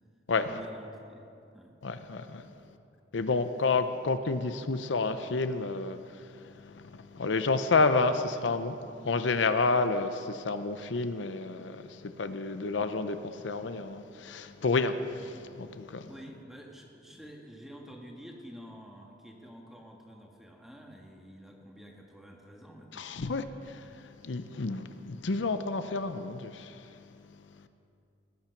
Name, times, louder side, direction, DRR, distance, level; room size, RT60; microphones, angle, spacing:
voice 1, 0.4-1.8 2.4-2.6 3.7-3.8 16.1-23.2, equal, ahead, 1.5 m, -49 dB
voice 2, 1.8-2.6 3.1-16.1 22.9-27.7, left 3 dB, 80° left, 0.6 m, -30 dB
18.5 x 8.9 x 5.9 m
head